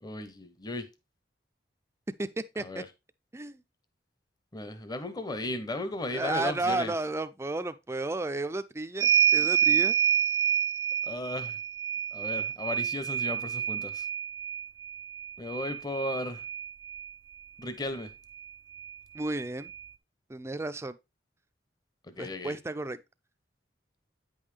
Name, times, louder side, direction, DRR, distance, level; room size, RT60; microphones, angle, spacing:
voice 1, 0.0-0.9 2.6-2.9 4.5-6.9 11.0-11.6 12.1-14.1 15.4-16.4 17.6-18.1 22.0-22.6, left 2 dB, 20° left, 0.8 m, -35 dB
voice 2, 6.1-10.0 19.1-19.7 20.3-21.0 22.2-23.0, right 2 dB, 15° right, 0.4 m, -33 dB
sound 1, 9.0-17.1 18.4-18.5 18.8-19.8, right 9 dB, 80° right, 0.5 m, -28 dB
8.8 x 5.5 x 3.3 m
head